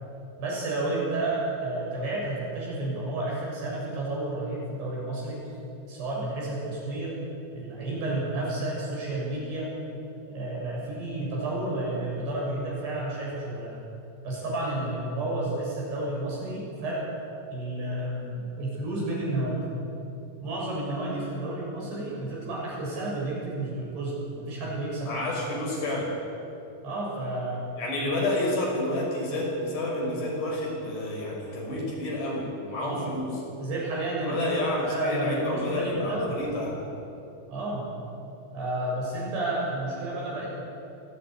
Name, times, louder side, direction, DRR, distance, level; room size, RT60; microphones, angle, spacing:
voice 1, 0.4-5.4 5.9-7.2 7.5-9.7 10.3-13.9 14.2-17.1 17.5-19.7 20.4-25.1 25.5-25.6 26.8-27.7 32.8-33.1 33.6-34.4 34.7-36.4 37.5-37.9 38.5-40.5, right 2 dB, 65° right, -4 dB, 9.0 m, -31 dB
voice 2, 25.0-26.1 27.8-33.4 34.2-36.8, left 1 dB, 70° left, -2 dB, 8.0 m, -29 dB
23.5 x 16.5 x 9.5 m, 2.7 s
omnidirectional pair, 5.1 m